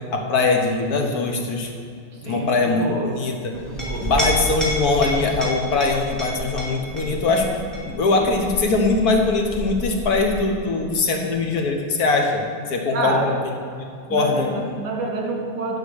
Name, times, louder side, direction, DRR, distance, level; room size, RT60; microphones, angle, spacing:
voice 1, 0.1-1.7 2.2-3.3 4.0-13.5 14.1-14.5, left 3 dB, 65° left, 2 dB, 1.5 m, -21 dB
voice 2, 2.1-3.2 3.5-4.1 12.9-13.4 14.1-15.8, right 2 dB, 75° right, 0 dB, 2.2 m, -27 dB
Chink clink, 3.5-10.7, equal, ahead, 2.1 m, -30 dB
11.0 x 5.0 x 6.2 m, 2.4 s
omnidirectional pair, 1.8 m